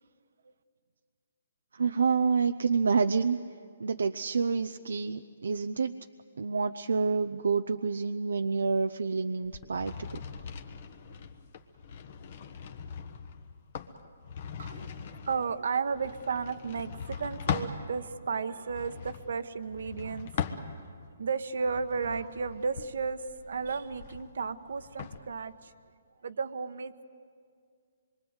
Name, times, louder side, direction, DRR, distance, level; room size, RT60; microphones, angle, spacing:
voice 1, 1.7-3.4 3.8-5.9 6.4-10.2, right 5 dB, 85° right, 8 dB, 0.6 m, -28 dB
sound 1, 9.4-17.8 18.6-21.1 21.6-25.2, left 7 dB, 45° left, 1.3 m, -40 dB
voice 2, 14.6-14.9 15.3-20.3 21.2-25.7 26.2-27.0, right 5 dB, 70° right, 12 dB, 1.1 m, -33 dB
25.5 x 23.0 x 8.1 m, 2.2 s
hypercardioid pair, 160°, 0 cm